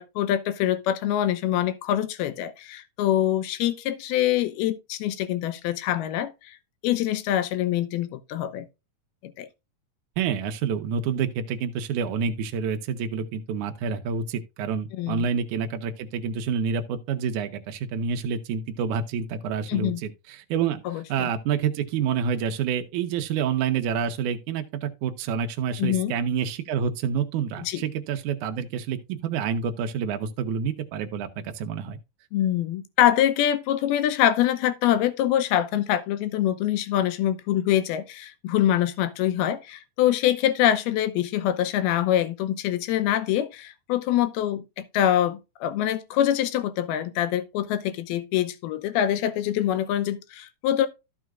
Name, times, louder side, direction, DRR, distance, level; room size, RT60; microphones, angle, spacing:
voice 1, 0.0-6.6 6.8-8.7 9.2-9.5 14.9-15.3 19.7-20.0 20.9-21.3 25.8-26.1 27.6-27.8 32.3-50.9, left 11 dB, 80° left, 2.7 m, -24 dB
voice 2, 10.2-20.8 21.1-32.0, right 7 dB, 70° right, 2.0 m, -28 dB
14.0 x 6.2 x 2.4 m
omnidirectional pair, 4.5 m